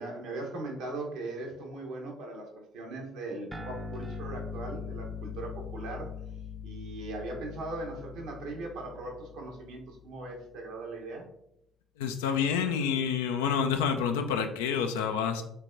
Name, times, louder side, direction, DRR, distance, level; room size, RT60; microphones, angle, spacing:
voice 1, 0.0-6.1 6.6-11.3, right 2 dB, 70° right, 0 dB, 0.9 m, -39 dB
sound 1, 3.5-10.3, left 5 dB, 20° right, 0.5 m, -42 dB
voice 2, 12.0-15.4, left 7 dB, 80° left, 6 dB, 0.4 m, -28 dB
4.5 x 3.5 x 2.6 m, 0.80 s
hypercardioid pair, 50°, 0 cm